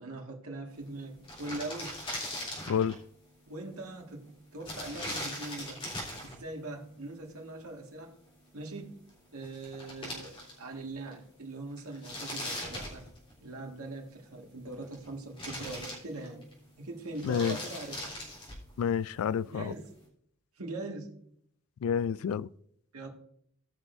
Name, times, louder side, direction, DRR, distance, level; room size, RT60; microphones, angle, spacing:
voice 1, 0.0-2.0 3.5-5.8 6.2-8.2 8.5-9.0 9.3-13.1 13.4-16.5 16.8-18.2 19.5-19.9 20.6-21.2 22.9-23.1, right 2 dB, 85° right, 1.9 m, -41 dB
sound 1, 0.9-1.0 1.1-3.0 4.6-6.4 9.1-9.2 9.4-10.8 11.1-11.2 11.8-13.5 14.5-15.1 15.4-16.5 17.0-18.7, left 1 dB, 25° left, 3.4 m, -40 dB
voice 2, 17.2-17.6 18.8-19.7 21.8-22.5, left 7 dB, 75° left, 0.3 m, -29 dB
18.0 x 6.1 x 2.6 m
head